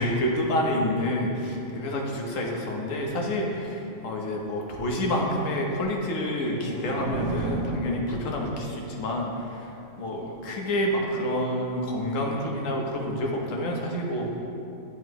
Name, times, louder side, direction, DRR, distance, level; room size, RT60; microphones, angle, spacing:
voice 1, 0.0-14.4, left 1 dB, 85° left, 0 dB, 1.3 m, -28 dB
sound 1, 6.0-8.8, right 3 dB, 90° right, 1.1 m, -35 dB
9.1 x 5.6 x 3.0 m, 2.7 s
omnidirectional pair, 1.3 m